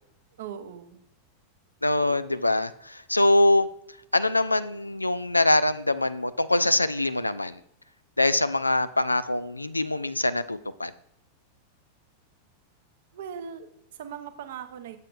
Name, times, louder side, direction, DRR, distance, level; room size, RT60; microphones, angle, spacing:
voice 1, 0.4-1.0 13.1-15.0, right 8 dB, 55° right, 9 dB, 0.7 m, -39 dB
voice 2, 1.8-3.7 4.1-7.6 8.2-10.9, left 1 dB, 85° left, 14 dB, 0.3 m, -23 dB
7.5 x 7.5 x 2.5 m, 0.74 s
figure-of-eight pair, 90°, 0 cm